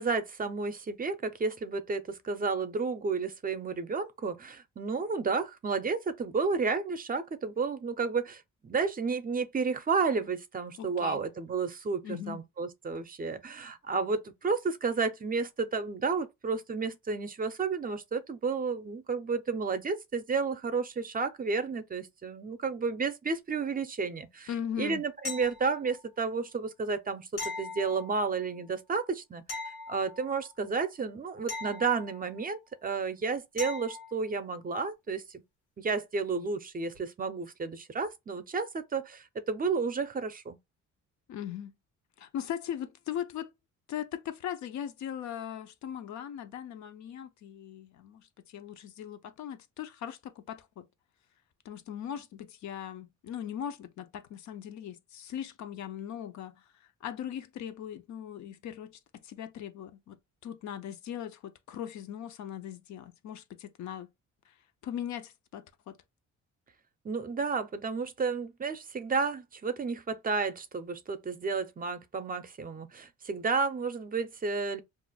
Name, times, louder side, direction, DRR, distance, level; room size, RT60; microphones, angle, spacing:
voice 1, 0.0-12.0 12.3-24.5 24.8-29.6 29.9-35.4 35.8-40.6 67.0-74.8, right 4 dB, 30° right, 0.5 m, -32 dB
voice 2, 10.8-11.3 12.0-12.4 24.5-25.0 41.3-41.7 42.2-43.5 43.9-50.9 51.6-64.1 64.5-64.6 64.8-66.0, left 9 dB, 70° left, 0.6 m, -39 dB
sound 1, 25.2-26.0 27.4-28.4 29.5-30.5 31.5-32.5 33.6-34.2 36.9-37.0, left 3 dB, 85° left, 1.4 m, -40 dB
2.5 x 2.1 x 3.9 m
cardioid pair, 90°, 30 cm